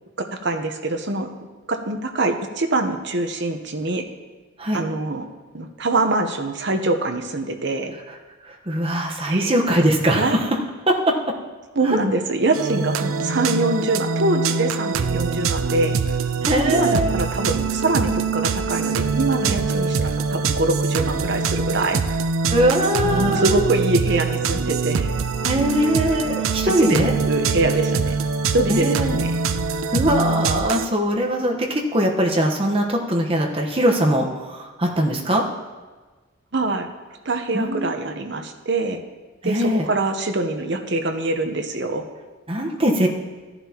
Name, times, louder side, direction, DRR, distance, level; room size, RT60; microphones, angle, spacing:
voice 1, 0.3-1.3 1.7-4.0 4.7-5.2 5.5-7.9 9.3-9.5 10.1-10.4 11.7-15.9 16.7-22.0 23.0-25.1 26.2-28.1 28.5-29.3 36.5-36.9 37.2-39.0 39.4-42.0, right 2 dB, 60° right, 6 dB, 0.9 m, -24 dB
voice 2, 8.5-10.5 10.9-11.1 16.4-17.1 22.5-23.7 25.4-27.1 28.7-29.2 29.9-35.4 37.5-37.9 39.4-39.9 42.5-43.1, equal, 30° right, 0 dB, 1.1 m, -21 dB
sound 1, 12.5-30.9, right 5 dB, 85° right, 0.5 m, -23 dB
14.5 x 11.0 x 3.0 m, 1.3 s
head